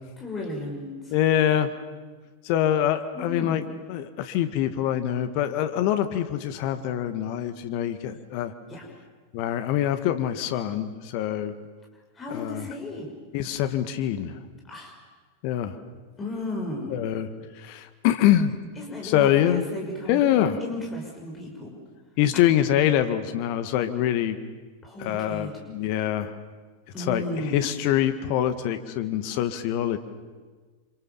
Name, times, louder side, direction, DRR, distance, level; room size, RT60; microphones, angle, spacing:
voice 1, 0.2-1.1 3.1-3.6 8.7-8.8 12.1-13.1 14.7-14.9 16.2-17.0 18.8-20.2 20.6-21.8 24.8-25.6 26.9-27.7, left 2 dB, 20° left, 0 dB, 5.9 m, -34 dB
voice 2, 1.1-1.7 2.4-3.6 3.9-8.5 9.3-11.5 12.3-12.6 13.3-14.4 15.4-15.8 16.9-17.3 17.6-18.5 19.0-19.6 20.1-20.6 22.2-24.4 25.0-26.3 27.0-27.2 27.5-30.0, left 11 dB, 45° left, 9 dB, 1.7 m, -24 dB
28.5 x 27.0 x 7.2 m, 1.4 s
figure-of-eight pair, 90°, 0 cm